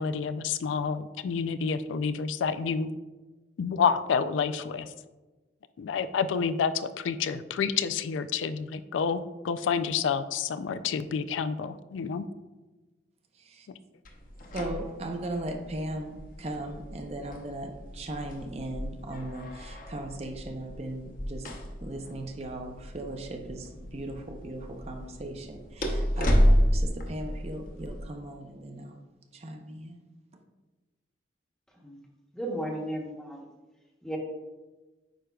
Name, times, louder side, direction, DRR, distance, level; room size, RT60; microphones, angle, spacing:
voice 1, 0.0-2.9 3.6-4.9 5.8-12.3, left 6 dB, 90° left, 13 dB, 0.3 m, -29 dB
sound 1, 14.0-28.0, equal, 45° left, 0.8 m, -31 dB
voice 2, 14.5-21.4 21.8-29.0 29.3-30.0, right 1 dB, 35° right, 4 dB, 0.6 m, -38 dB
voice 3, 32.3-33.4 34.0-34.2, right 1 dB, 5° left, -1 dB, 0.9 m, -34 dB
9.0 x 4.9 x 2.3 m, 1.2 s
head